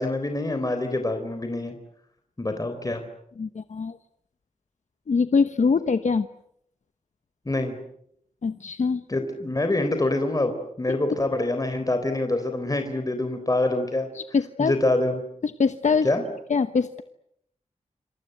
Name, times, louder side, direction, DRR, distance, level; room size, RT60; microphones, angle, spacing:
voice 1, 0.0-1.7 2.4-3.0 7.5-7.7 9.1-14.1 14.6-15.2 16.0-16.2, left 2 dB, 25° left, 7 dB, 3.8 m, -25 dB
voice 2, 3.4-4.0 5.1-6.3 8.4-9.0 10.9-11.0 14.1-14.7 15.4-16.1 16.5-17.0, left 5 dB, 65° left, 10 dB, 1.1 m, -23 dB
27.5 x 27.0 x 7.9 m, 0.73 s
wide cardioid pair, 100°, 13 cm